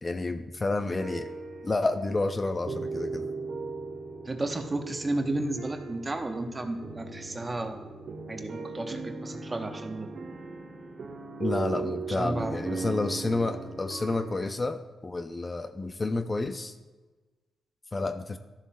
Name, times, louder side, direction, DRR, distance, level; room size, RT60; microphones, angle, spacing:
voice 1, 0.0-1.3 1.6-3.3 11.4-16.8 17.9-18.4, left 2 dB, 30° left, 8 dB, 0.5 m, -30 dB
sound 1, 0.8-14.4, right 4 dB, 60° right, 1.0 m, -38 dB
voice 2, 4.2-7.9 8.3-10.1 12.2-12.6, right 2 dB, 25° right, 5 dB, 0.9 m, -32 dB
12.0 x 7.1 x 2.3 m, 1.2 s
cardioid pair, 70°, 0 cm